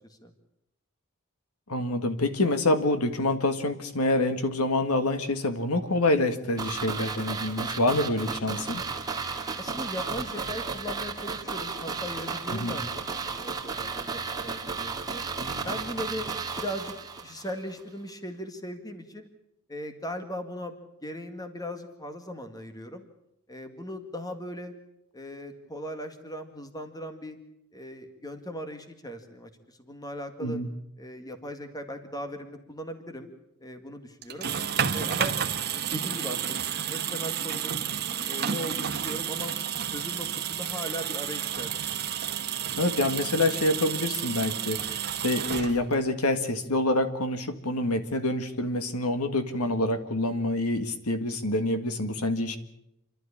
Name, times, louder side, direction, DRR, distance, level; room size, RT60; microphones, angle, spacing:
voice 1, 1.7-8.8 12.5-12.8 30.4-30.7 42.8-52.6, left 2 dB, 75° left, 9 dB, 1.9 m, -26 dB
sound 1, 6.6-17.5 17.8-17.9, right 4 dB, 15° right, 2.1 m, -34 dB
voice 2, 9.6-15.2 15.6-16.3 16.6-17.0 17.2-19.3 19.7-23.1 23.5-24.7 25.1-27.4 27.7-30.6 31.0-33.3 33.6-34.5 34.9-35.4 35.7-36.6 36.9-37.9 38.2-39.5 39.9-42.0, equal, 15° left, 7 dB, 1.9 m, -38 dB
sound 2, 34.2-46.1, right 8 dB, 45° right, 1.4 m, -31 dB
28.5 x 12.5 x 8.5 m, 0.81 s
head